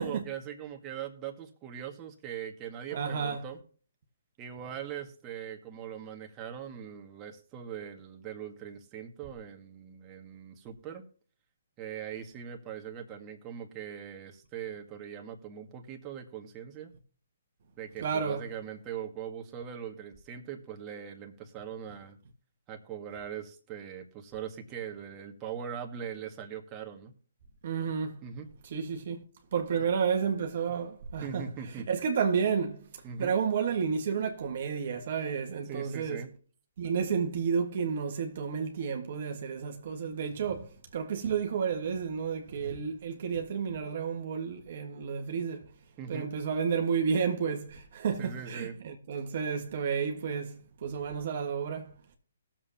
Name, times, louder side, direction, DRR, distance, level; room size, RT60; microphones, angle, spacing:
voice 1, 0.0-3.6 4.4-11.1 11.8-16.9 17.8-22.2 22.7-27.2 28.2-28.5 29.8-29.9 31.2-31.9 33.0-33.3 35.7-36.4 46.0-46.3 48.2-48.8, right 8 dB, 25° right, 1.9 m, -41 dB
voice 2, 2.9-3.4 18.0-18.4 27.6-28.2 28.7-29.2 29.5-31.5 31.9-32.8 33.2-36.2 36.8-45.6 46.1-51.9, right 6 dB, 55° right, 1.6 m, -31 dB
20.0 x 7.5 x 2.9 m
figure-of-eight pair, 135°, 0 cm